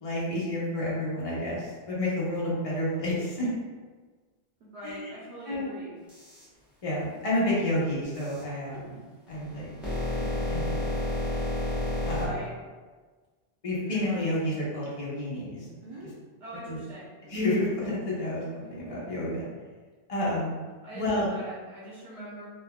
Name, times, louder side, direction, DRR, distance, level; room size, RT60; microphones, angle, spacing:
voice 1, 0.0-3.5 4.8-5.1 5.5-5.7 6.8-9.0 9.3-9.7 10.5-10.9 12.1-12.4 13.6-15.7 15.9-16.1 16.7-16.8 17.3-19.5 20.1-20.6 20.9-21.3, left 1 dB, 35° left, -7 dB, 0.8 m, -30 dB
voice 2, 4.6-5.9 12.2-12.5 16.4-17.1 20.8-22.4, right 1 dB, 85° right, -8 dB, 1.0 m, -42 dB
sound 1, 6.1-6.4 8.1-8.4 9.3-12.2, left 1 dB, ahead, 0.8 m, -30 dB
sound 2, 8.7-9.0 9.6-9.7 10.1-10.7 11.4-11.5 13.7-14.3 15.6-16.1 17.2-17.6 18.6-19.5, right 1 dB, 35° right, 0.5 m, -46 dB
3.4 x 2.6 x 2.2 m, 1.4 s
omnidirectional pair, 1.1 m